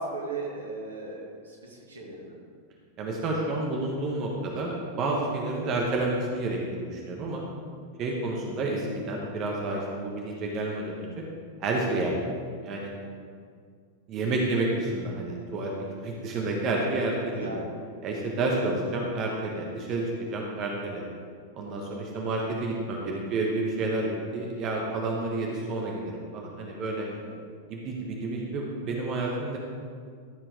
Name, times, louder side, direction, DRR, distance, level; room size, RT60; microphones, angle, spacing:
voice 1, 0.0-2.4 8.0-8.3 17.3-17.7 26.9-27.3, right 3 dB, 75° right, -1 dB, 2.1 m, -38 dB
voice 2, 3.0-7.4 8.0-11.1 11.6-12.2 12.6-12.9 14.1-17.6 18.0-21.0 21.5-26.0 26.3-27.1 27.7-29.6, right 2 dB, 35° right, -1 dB, 1.3 m, -30 dB
14.0 x 7.5 x 3.6 m, 2.1 s
figure-of-eight pair, 90°, 0 cm